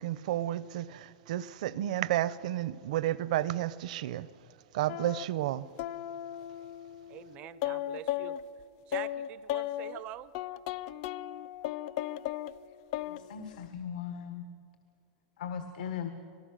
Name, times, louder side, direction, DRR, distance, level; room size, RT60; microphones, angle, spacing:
voice 1, 0.0-4.3 4.7-5.7, right 13 dB, 65° right, 18 dB, 0.7 m, -31 dB
sound 1, 4.9-5.2 5.8-8.4 8.9-10.0 10.3-12.5 12.9-13.2 13.5-13.6, left 13 dB, 45° left, 0.5 m, -36 dB
voice 2, 7.1-8.4 8.9-10.3, right 13 dB, 30° right, 16 dB, 0.5 m, -44 dB
voice 3, 13.0-14.4 15.4-16.1, left 8 dB, 85° left, 7 dB, 1.5 m, -38 dB
26.0 x 19.5 x 6.5 m, 2.4 s
supercardioid pair, 165°, 4 cm